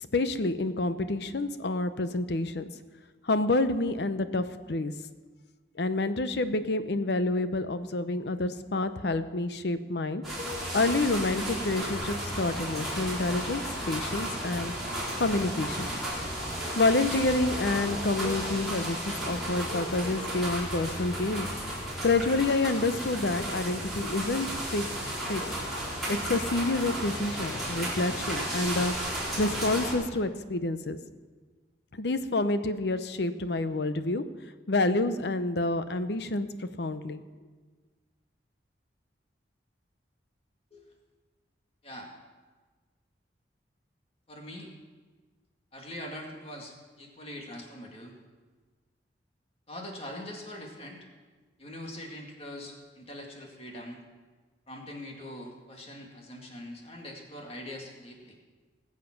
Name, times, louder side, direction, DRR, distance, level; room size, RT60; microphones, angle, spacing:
voice 1, 0.1-2.7 3.3-4.9 5.8-10.2 10.7-13.6 13.9-14.7 15.2-15.9 16.8-19.0 19.2-21.5 22.0-24.5 24.7-24.9 25.3-25.4 26.1-28.9 29.4-31.0 32.0-34.2 34.7-36.5 36.8-37.2, left 2 dB, 65° left, 11 dB, 0.7 m, -28 dB
sound 1, 10.2-29.9, equal, ahead, 3.9 m, -34 dB
voice 2, 44.3-44.7 45.7-48.1 49.7-51.1 51.6-54.0 54.7-58.4, left 1 dB, 35° left, 1 dB, 2.1 m, -42 dB
20.0 x 7.5 x 5.9 m, 1.4 s
head